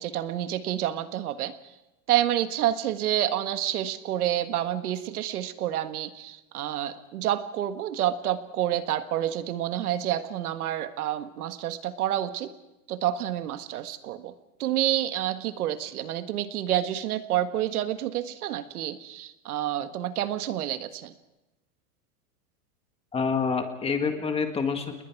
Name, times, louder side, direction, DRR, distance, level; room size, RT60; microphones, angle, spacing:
voice 1, 0.0-1.5 2.1-12.5 12.9-14.3 14.6-21.1, right 12 dB, 90° right, 9 dB, 1.8 m, -28 dB
voice 2, 23.1-25.0, left 5 dB, 15° left, 6 dB, 1.7 m, -27 dB
30.0 x 20.5 x 4.7 m, 0.98 s
supercardioid pair, 160°, 43 cm